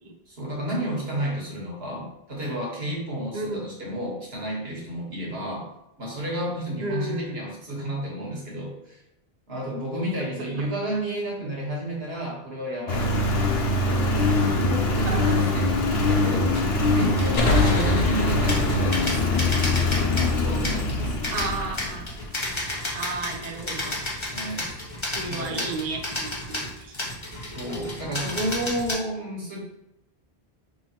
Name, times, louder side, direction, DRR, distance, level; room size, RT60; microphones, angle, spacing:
voice 1, 0.3-5.7 6.0-9.0 9.5-13.2 13.8-15.7 16.1-16.5 16.9-19.5 20.1-21.2 24.3-24.7 25.2-25.7 27.5-29.6, right 1 dB, 65° right, -2 dB, 1.5 m, -31 dB
voice 2, 6.8-7.4 15.0-15.3 21.3-22.1 22.9-24.0 25.1-27.0, right 3 dB, 45° right, 2 dB, 0.7 m, -33 dB
Engine, 12.9-22.3, left 2 dB, 70° left, 0.9 m, -23 dB
sound 1, 15.1-15.2 15.4-15.9 16.3-16.7 17.2-28.9, left 1 dB, 30° left, 1.0 m, -33 dB
sound 2, 17.4-20.8, left 1 dB, 50° left, 0.6 m, -28 dB
5.7 x 3.1 x 2.8 m, 0.87 s
omnidirectional pair, 1.1 m